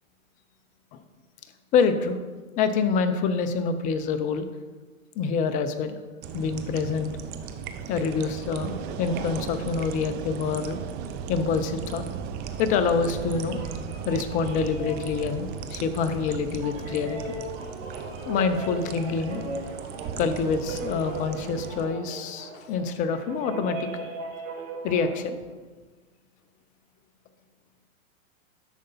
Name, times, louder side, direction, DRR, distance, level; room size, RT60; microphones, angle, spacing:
voice 1, 1.7-2.2 2.6-4.5 5.2-6.0 6.3-7.1 7.9-10.8 11.3-12.0 12.6-13.6 14.1-17.2 18.3-19.4 20.2-24.0 24.8-25.4, left 5 dB, 20° left, 9 dB, 0.5 m, -26 dB
sound 1, 6.2-21.9, right 7 dB, 25° right, 0.5 m, -37 dB
sound 2, 13.1-25.2, right 3 dB, 60° right, 3.1 m, -38 dB
10.5 x 6.6 x 3.9 m, 1.3 s
hypercardioid pair, 130°, 41 cm